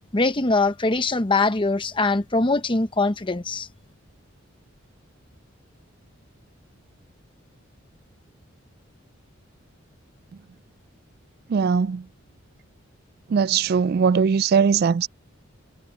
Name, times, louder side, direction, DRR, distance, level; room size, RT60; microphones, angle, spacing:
voice 1, 0.1-3.7, left 3 dB, 25° left, 0.9 m, -22 dB
voice 2, 11.5-12.0 13.3-15.1, right 6 dB, 50° right, 0.3 m, -20 dB
head